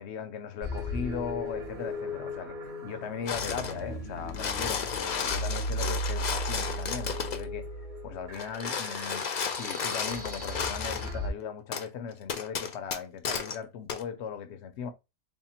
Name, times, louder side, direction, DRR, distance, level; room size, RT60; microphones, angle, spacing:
voice 1, 0.0-7.6 8.0-9.3 9.6-14.9, left 7 dB, 80° left, 0.9 m, -38 dB
sound 1, 0.6-11.3, equal, 70° right, 1.5 m, -36 dB
sound 2, 3.3-3.8 4.2-7.4 8.3-11.1 11.7-11.9 12.3-13.6 13.9-14.0, left 6 dB, 50° left, 0.6 m, -33 dB
3.5 x 2.1 x 4.2 m
omnidirectional pair, 1.1 m